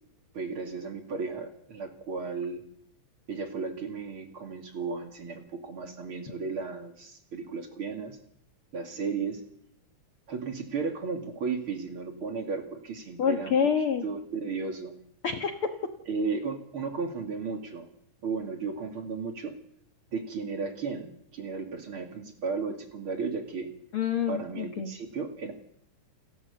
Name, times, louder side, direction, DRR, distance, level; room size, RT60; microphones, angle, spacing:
voice 1, 0.3-2.6 3.3-8.2 8.7-9.4 10.3-13.6 14.0-14.9 16.1-17.9 18.2-19.5 20.1-23.7 24.3-25.5, right 4 dB, 40° right, 5 dB, 2.9 m, -34 dB
voice 2, 13.2-14.0 15.2-15.6 23.9-24.9, left 7 dB, 55° left, 6 dB, 1.7 m, -27 dB
29.0 x 12.5 x 8.2 m, 0.70 s
omnidirectional pair, 3.8 m